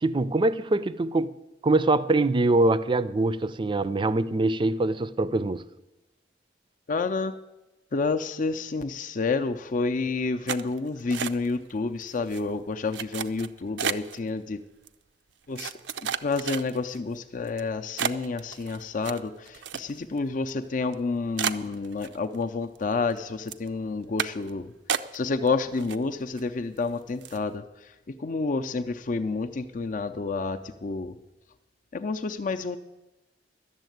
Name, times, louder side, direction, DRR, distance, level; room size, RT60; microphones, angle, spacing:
voice 1, 0.0-1.3 1.6-5.6, right 2 dB, 30° right, 0.4 m, -23 dB
voice 2, 6.9-7.3 7.9-14.6 15.5-15.7 16.0-24.7 25.1-27.9 28.2-31.2 31.9-32.8, left 3 dB, 50° left, 0.5 m, -29 dB
sound 1, 10.5-11.7 12.0-12.4 12.9-14.2 14.9-15.0 15.6-17.0 17.5-17.6 18.0-20.2 20.5-20.6 20.9-21.0 21.4-22.4 22.8-23.2 23.5-23.7 24.2-24.5 24.9-25.5 25.8-26.4 26.8-26.9 27.2-27.5, right 8 dB, 90° right, 0.5 m, -32 dB
12.0 x 7.2 x 9.2 m
head